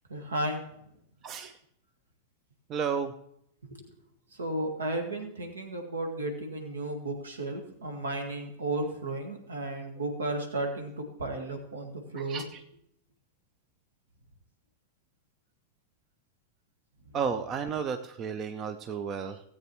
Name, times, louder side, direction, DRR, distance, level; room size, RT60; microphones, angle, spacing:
voice 1, 0.1-0.6 3.7-3.8 4.3-12.4, right 2 dB, 70° right, 4 dB, 1.9 m, -34 dB
voice 2, 2.7-3.1 12.2-12.6 17.1-19.4, right 6 dB, 30° right, 10 dB, 0.6 m, -32 dB
17.0 x 8.5 x 3.1 m, 0.73 s
figure-of-eight pair, 90°, 0 cm